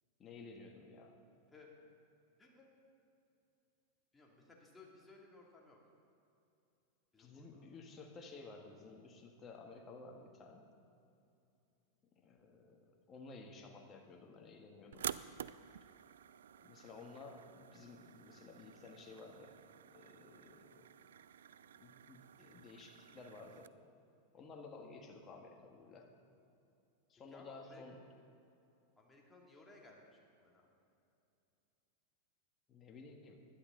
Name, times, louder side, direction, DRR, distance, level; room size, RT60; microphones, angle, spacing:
voice 1, 0.2-1.2 7.2-10.7 12.1-15.1 16.6-19.6 19.9-20.9 21.8-23.7 24.3-26.1 27.1-28.0 32.7-33.4, left 3 dB, 25° left, 2 dB, 1.6 m, -54 dB
voice 2, 2.4-2.7 4.1-5.8 7.1-7.6 27.3-27.8 29.0-30.6, left 2 dB, 10° left, -2 dB, 2.5 m, -60 dB
sound 1, 14.9-23.7, right 9 dB, 90° right, 0.3 m, -50 dB
16.0 x 11.5 x 3.9 m, 2.7 s
supercardioid pair, 125°, 0 cm